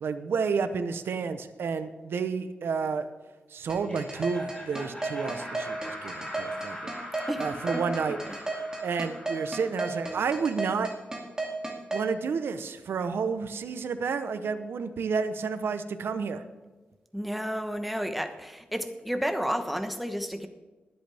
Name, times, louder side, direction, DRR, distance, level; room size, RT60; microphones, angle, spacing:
voice 1, 0.0-3.1 3.5-6.9 7.4-8.2 8.8-10.9 11.9-16.4, right 5 dB, 85° right, 9 dB, 0.8 m, -30 dB
Laughter, 3.7-10.5, left 1 dB, 15° left, 4.8 m, -42 dB
sound 1, 3.7-12.1, right 2 dB, 15° right, 2.5 m, -33 dB
voice 2, 17.1-20.5, equal, ahead, 7 dB, 1.0 m, -31 dB
22.0 x 7.9 x 3.4 m, 1.3 s
wide cardioid pair, 130°, 4 cm